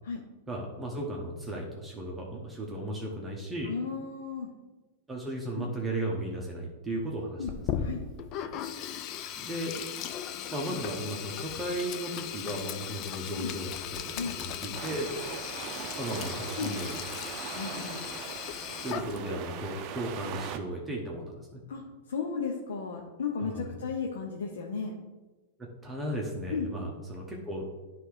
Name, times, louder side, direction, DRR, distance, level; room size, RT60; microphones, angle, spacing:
voice 1, 0.5-3.7 5.1-7.5 7.7-7.9 9.4-9.8 10.5-15.1 16.0-17.0 18.8-21.6 23.4-23.7 25.8-27.7, right 1 dB, 10° right, -2 dB, 1.1 m, -35 dB
voice 2, 3.6-4.5 5.6-5.7 7.4-7.5 7.8-8.0 13.4-13.6 14.1-14.4 16.6-16.8 17.6-18.0 21.7-21.8 22.1-24.9 26.5-26.7, left 5 dB, 80° left, 1 dB, 0.8 m, -34 dB
Sink (filling or washing), 7.4-19.5, left 9 dB, 40° left, 0.5 m, -37 dB
sound 1, 14.7-20.6, right 9 dB, 45° right, 0.6 m, -40 dB
9.6 x 3.5 x 4.9 m, 1.2 s
hypercardioid pair, 125°, 0 cm